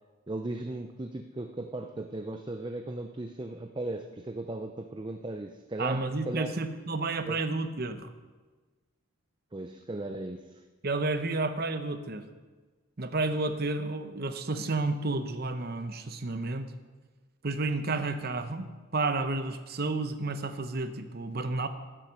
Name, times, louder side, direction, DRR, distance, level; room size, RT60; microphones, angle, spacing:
voice 1, 0.3-6.6 7.3-7.4 9.5-10.6, right 2 dB, 20° right, 5 dB, 0.5 m, -37 dB
voice 2, 5.8-8.1 10.8-12.3 13.0-16.7 17.4-21.7, right 3 dB, 45° right, 9 dB, 0.8 m, -31 dB
15.0 x 7.5 x 6.2 m, 1.3 s
head